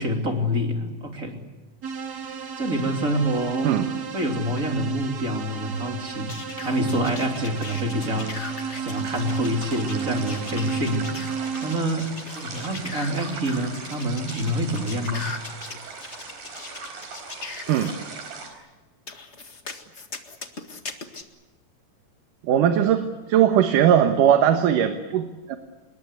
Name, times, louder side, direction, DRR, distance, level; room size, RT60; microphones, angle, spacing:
voice 1, 0.0-1.4 2.6-3.8 4.1-11.1 11.6-15.3, equal, 25° right, 4 dB, 3.1 m, -27 dB
sound 1, 1.8-11.8, right 6 dB, 45° right, 1.4 m, -33 dB
sound 2, 5.9-18.5, right 4 dB, 90° right, 6.1 m, -40 dB
sound 3, 6.3-17.9 19.1-21.2, left 4 dB, 30° left, 1.3 m, -39 dB
voice 2, 22.4-25.6, right 9 dB, 75° right, 7 dB, 2.8 m, -19 dB
26.5 x 22.0 x 8.3 m, 1.2 s
omnidirectional pair, 3.9 m